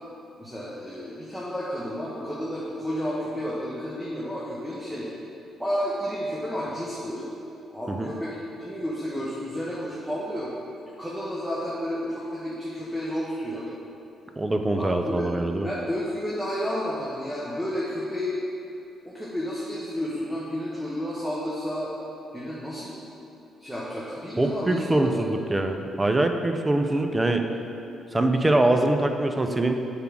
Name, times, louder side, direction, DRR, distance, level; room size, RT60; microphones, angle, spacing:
voice 1, 0.4-5.1 5.6-7.2 7.7-10.5 11.0-13.7 14.7-15.3 15.6-18.4 19.0-21.9 22.3-23.0 23.6-25.4, equal, ahead, -7 dB, 1.1 m, -31 dB
voice 2, 14.4-15.7 24.4-27.5 28.1-29.7, right 2 dB, 15° right, 5 dB, 0.6 m, -23 dB
7.1 x 3.7 x 6.1 m, 2.9 s
cardioid pair, 90°, 0 cm